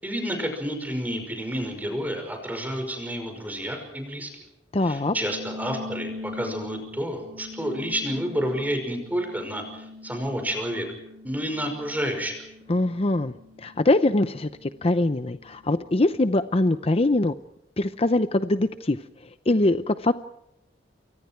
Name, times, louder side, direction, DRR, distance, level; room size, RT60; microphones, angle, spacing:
voice 1, 0.0-4.3 4.8-10.9 11.2-12.4, equal, 10° right, 5 dB, 5.5 m, -30 dB
voice 2, 4.7-5.1 12.7-13.3 13.6-17.3 17.8-19.0 19.5-20.1, left 2 dB, 35° left, 11 dB, 0.7 m, -22 dB
sound 1, 5.1-15.9, left 2 dB, 55° right, 3.3 m, -42 dB
29.0 x 24.0 x 4.6 m, 0.82 s
head